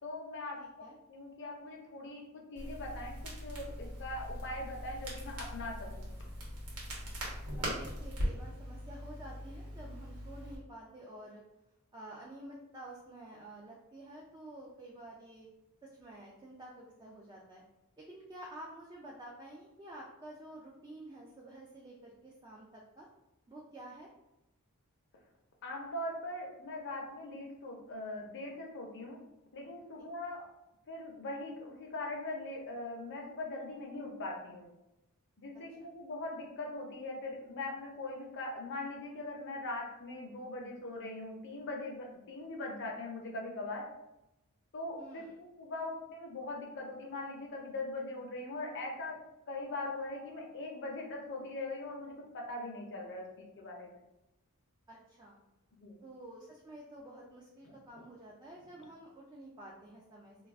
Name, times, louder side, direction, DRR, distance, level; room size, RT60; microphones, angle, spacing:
voice 1, 0.0-6.3 25.6-29.2 29.5-30.5 30.9-34.7 35.4-43.9 44.7-49.2 49.5-54.0 55.7-56.0 57.7-58.0, left 2 dB, 55° left, 0 dB, 0.6 m, -41 dB
Crackle, 2.6-10.6, equal, 85° right, 0.9 m, -41 dB
voice 2, 7.6-11.4 11.9-15.5 15.8-17.6 18.0-23.1 23.5-24.1 45.0-45.3 54.9-55.4 56.0-60.4, right 1 dB, 20° right, -3 dB, 0.4 m, -50 dB
2.3 x 2.3 x 3.4 m, 0.90 s
head